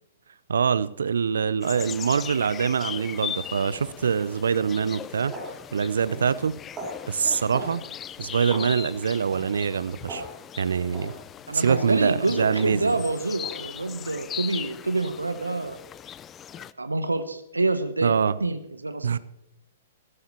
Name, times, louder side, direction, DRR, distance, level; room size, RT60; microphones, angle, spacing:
voice 1, 0.5-5.3 5.7-6.6 7.1-7.8 8.2-10.2 10.6-11.1 11.5-12.9 18.0-18.4 19.0-19.2, right 6 dB, 70° right, 0.6 m, -24 dB
sound 1, 1.6-16.7, left 9 dB, 20° left, 0.4 m, -39 dB
sound 2, 4.6-4.8 5.3-5.6 6.1-6.3 6.8-7.0 7.5-7.8 8.5-8.7 9.3-9.5 10.1-10.3 10.9-11.2 11.7-11.9 12.5-12.7 13.4-13.6, right 2 dB, 25° right, 4.6 m, -37 dB
voice 2, 11.5-15.8 16.6-19.2, right 2 dB, 85° right, 1.0 m, -27 dB
16.5 x 14.5 x 3.1 m
figure-of-eight pair, 115°, 0 cm